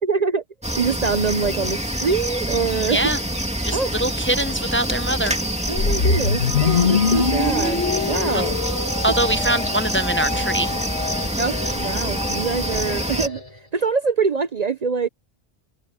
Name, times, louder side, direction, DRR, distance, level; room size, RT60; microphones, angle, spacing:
voice 1, 0.0-0.4 0.8-3.1 3.7-3.9 5.7-8.5 11.4-13.4 13.7-15.1, right 5 dB, 45° right, 0.8 m, -24 dB
sound 1, 0.6-13.3, equal, 5° right, 2.6 m, -26 dB
voice 2, 2.9-3.2 3.6-5.4 8.3-8.4 9.0-10.7, right 1 dB, 10° left, 0.8 m, -23 dB
sound 2, 5.8-10.0, left 5 dB, 90° left, 1.9 m, -22 dB
sound 3, 6.3-13.7, left 3 dB, 35° left, 2.8 m, -32 dB
omnidirectional pair, 1.0 m